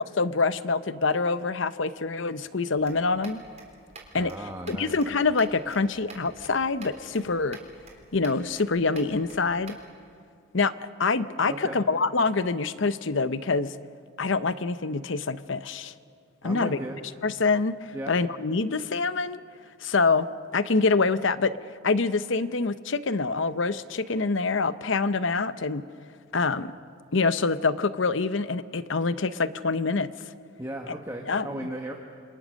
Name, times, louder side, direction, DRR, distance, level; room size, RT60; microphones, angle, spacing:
voice 1, 0.2-3.4 4.1-7.6 8.1-9.8 10.5-10.7 11.0-13.7 14.2-15.9 16.4-16.8 17.2-19.4 19.8-20.3 20.5-21.5 21.8-25.8 26.3-26.7 27.1-30.1 31.3-31.5, left 4 dB, 65° left, 13 dB, 0.8 m, -25 dB
sound 1, 2.8-9.9, right 3 dB, 30° right, 4.0 m, -49 dB
voice 2, 4.1-4.9 11.5-11.8 16.4-17.0 17.9-18.2 30.6-31.9, right 1 dB, 15° right, 1 dB, 1.4 m, -36 dB
28.0 x 25.5 x 6.4 m, 2.3 s
head